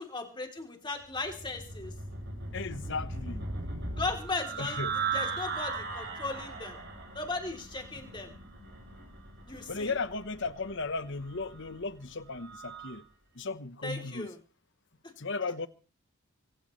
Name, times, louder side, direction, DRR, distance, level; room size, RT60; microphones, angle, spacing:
voice 1, 0.0-1.9 4.0-6.7 7.1-8.3 9.5-10.0 13.8-14.4, left 3 dB, 20° left, 3.1 m, -37 dB
sound 1, 1.1-13.0, right 4 dB, 50° right, 6.8 m, -39 dB
voice 2, 2.5-3.4 4.6-4.9 9.7-13.0 13.3-14.3 15.2-15.7, left 3 dB, 55° left, 1.0 m, -35 dB
23.5 x 17.5 x 3.2 m
head